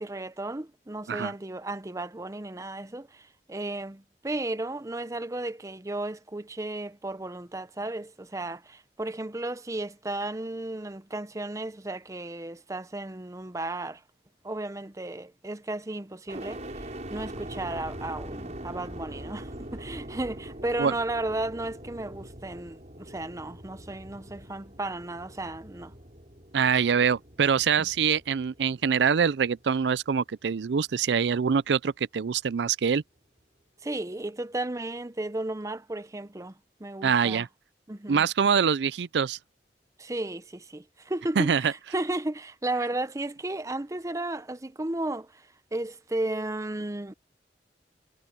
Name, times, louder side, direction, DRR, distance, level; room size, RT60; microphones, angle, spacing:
voice 1, 0.0-14.0 14.4-25.9 27.8-27.9 33.8-36.5 36.8-37.4 37.9-38.3 40.0-47.1, right 2 dB, 20° right, 0.7 m, -34 dB
sound 1, 16.3-30.3 30.8-31.5, right 1 dB, 40° right, 6.7 m, -43 dB
voice 2, 26.5-33.0 37.0-37.5 38.1-39.4 41.4-41.7, right 6 dB, 75° right, 0.4 m, -24 dB
head